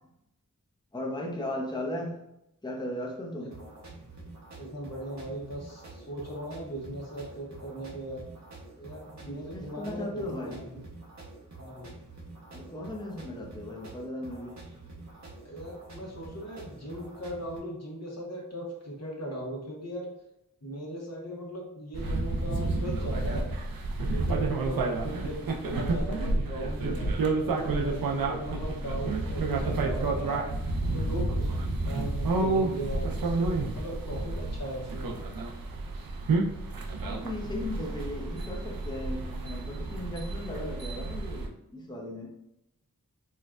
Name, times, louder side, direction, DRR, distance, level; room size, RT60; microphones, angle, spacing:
voice 1, 0.9-2.2 2.6-3.6 9.1-10.6 12.5-14.6 37.0-42.3, left 1 dB, 15° left, 0 dB, 0.6 m, -37 dB
sound 1, 3.5-17.6, right 2 dB, 55° right, 0.8 m, -47 dB
voice 2, 4.6-8.2 8.8-10.8 11.6-11.9 15.4-20.1 20.6-23.5 24.0-27.1 27.4-30.6 30.9-35.2, equal, 50° left, -2 dB, 1.0 m, -38 dB
sound 2, 21.9-41.5, right 3 dB, 90° right, 0.5 m, -30 dB
4.3 x 2.3 x 2.4 m, 0.84 s
wide cardioid pair, 60°, 34 cm